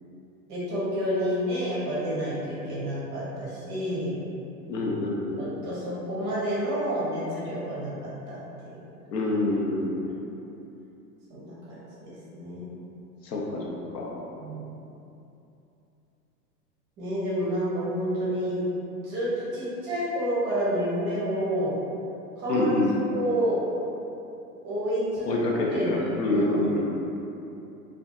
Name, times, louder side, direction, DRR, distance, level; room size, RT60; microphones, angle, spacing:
voice 1, 0.5-4.2 5.4-7.9 8.3-8.4 8.6-8.8 11.3-11.5 12.0-12.7 14.4-14.7 17.0-18.6 19.0-21.8 22.4-22.7 23.1-23.6 24.6-25.4 25.7-26.8, equal, 25° right, -8 dB, 0.5 m, -29 dB
voice 2, 4.7-5.5 9.1-10.1 13.2-14.2 22.5-22.9 25.3-26.9, left 2 dB, 85° left, -2 dB, 0.6 m, -26 dB
2.6 x 2.3 x 2.3 m, 2.8 s
hypercardioid pair, 115°, 48 cm